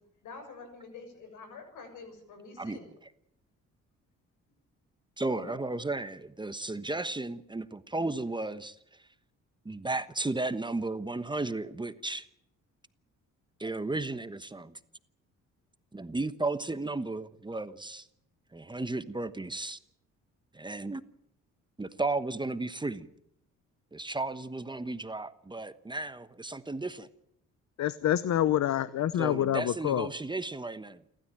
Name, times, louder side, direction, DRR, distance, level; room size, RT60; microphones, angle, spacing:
voice 1, 0.2-2.9 5.3-5.6, left 4 dB, 85° left, 7 dB, 7.0 m, -46 dB
voice 2, 5.2-8.7 9.6-12.3 13.6-14.8 15.9-18.1 18.5-19.8 20.5-21.0 21.8-23.1 23.9-27.1 29.2-31.0, right 2 dB, 15° right, 12 dB, 1.1 m, -34 dB
voice 3, 27.8-30.1, left 11 dB, 65° left, 16 dB, 0.9 m, -27 dB
29.0 x 13.0 x 9.0 m, 0.74 s
cardioid pair, 90°, 30 cm